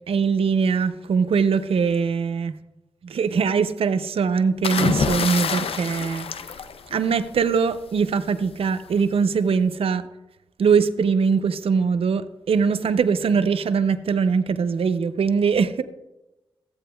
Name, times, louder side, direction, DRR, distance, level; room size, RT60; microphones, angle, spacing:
voice 1, 0.1-2.5 3.0-6.3 6.9-10.0 10.6-15.8, right 5 dB, 85° right, 0.4 m, -22 dB
sound 1, 4.6-7.4 8.6-8.9, left 6 dB, 85° left, 0.4 m, -26 dB
14.0 x 8.4 x 2.2 m
cardioid pair, 55°, 10 cm